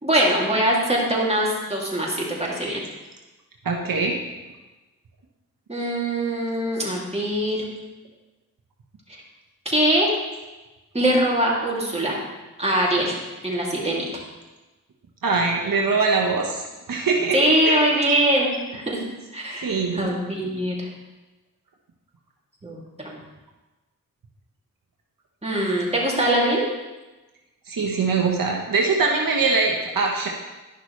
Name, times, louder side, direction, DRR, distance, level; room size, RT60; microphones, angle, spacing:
voice 1, 0.0-2.8 5.7-7.6 9.7-10.1 10.9-12.2 12.6-13.2 13.4-14.0 17.3-19.0 19.3-20.9 22.6-23.2 25.4-26.7, right 1 dB, 20° right, -4 dB, 2.5 m, -22 dB
voice 2, 3.6-4.2 15.2-16.6 16.9-17.4 17.6-17.8 19.6-20.1 27.7-30.3, right 4 dB, 75° right, 0 dB, 1.0 m, -22 dB
11.5 x 6.0 x 3.2 m, 1.1 s
cardioid pair, 45°, 34 cm